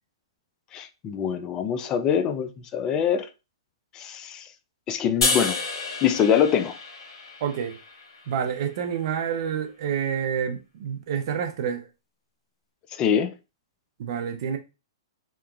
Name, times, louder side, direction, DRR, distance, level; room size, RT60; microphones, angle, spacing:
voice 1, 0.7-3.3 3.9-4.5 4.9-5.6 6.0-6.8 12.9-13.3, left 8 dB, 25° left, 0.3 m, -24 dB
sound 1, 5.2-8.5, left 3 dB, 70° left, 1.2 m, -29 dB
voice 2, 7.4-7.8 8.3-11.8 14.0-14.6, right 8 dB, 55° right, 0.6 m, -28 dB
2.9 x 2.3 x 2.3 m
hypercardioid pair, 130°, 3 cm